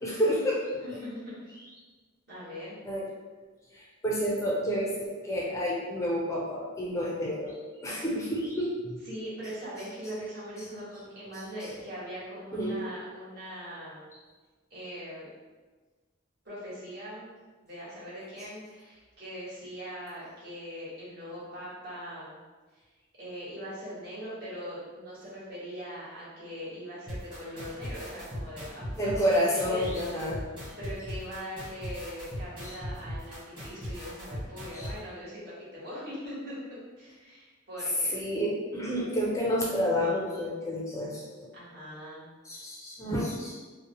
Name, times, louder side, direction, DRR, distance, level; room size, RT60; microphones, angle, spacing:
voice 1, 0.0-0.7 2.9-3.0 3.7-7.6 7.8-9.0 12.5-12.8 29.0-30.4 32.6-32.8 34.7-34.9 38.1-41.5 42.5-43.6, equal, 15° left, -4 dB, 0.3 m, -29 dB
voice 2, 0.8-1.6 2.3-2.8 9.0-14.0 14.7-15.3 16.4-17.3 17.6-22.4 22.7-22.8 23.2-29.4 29.7-29.8 30.8-38.2 41.5-42.3, equal, 55° right, -9 dB, 1.2 m, -41 dB
sound 1, 27.1-34.9, equal, 25° right, 1.2 m, -38 dB
2.6 x 2.0 x 2.8 m, 1.4 s
head